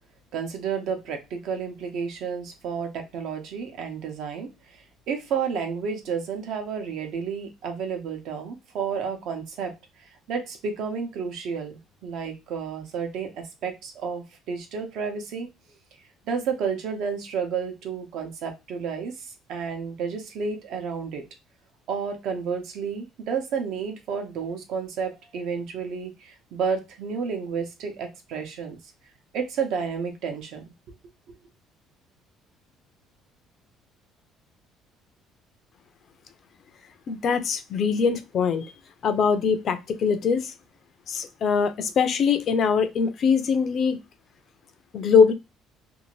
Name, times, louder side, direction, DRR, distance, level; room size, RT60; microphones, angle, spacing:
voice 1, 0.3-4.8 5.1-9.7 10.3-15.5 16.3-21.2 21.9-28.8 29.3-30.6, right 6 dB, 65° right, 4 dB, 0.8 m, -31 dB
voice 2, 37.1-38.7 39.0-40.5 41.1-44.0 44.9-45.3, left 6 dB, 45° left, 10 dB, 0.4 m, -22 dB
2.7 x 2.5 x 3.0 m, 0.24 s
cardioid pair, 145°, 0 cm